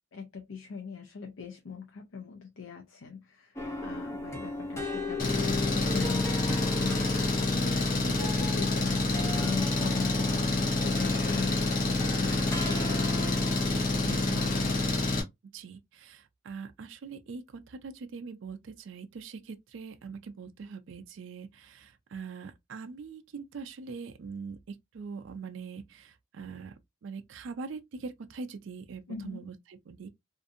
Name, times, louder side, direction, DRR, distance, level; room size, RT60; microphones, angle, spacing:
voice 1, 0.1-13.7 29.1-29.5, left 5 dB, 75° left, 0.5 m, -42 dB
sound 1, 3.6-14.5, left 2 dB, 15° left, 0.5 m, -38 dB
Engine, 5.2-15.2, left 2 dB, 40° left, 0.8 m, -28 dB
voice 2, 14.0-14.7 15.5-26.7 27.0-30.1, right 5 dB, 65° right, 0.4 m, -42 dB
2.5 x 2.5 x 2.5 m
head